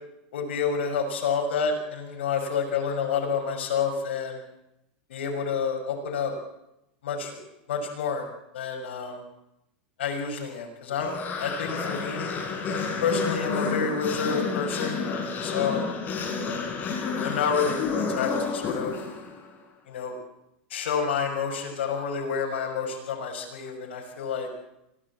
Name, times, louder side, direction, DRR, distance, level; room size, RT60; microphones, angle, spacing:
voice 1, 0.3-4.4 5.1-6.3 7.0-7.4 7.7-8.2 8.5-9.2 10.0-12.3 13.0-15.2 15.4-15.9 17.2-19.0 19.9-20.2 20.7-24.5, left 6 dB, 80° left, 0 dB, 6.2 m, -29 dB
sound 1, 11.0-19.5, left 5 dB, 30° left, 7.6 m, -30 dB
26.0 x 18.0 x 8.7 m, 0.89 s
supercardioid pair, 125°, 6 cm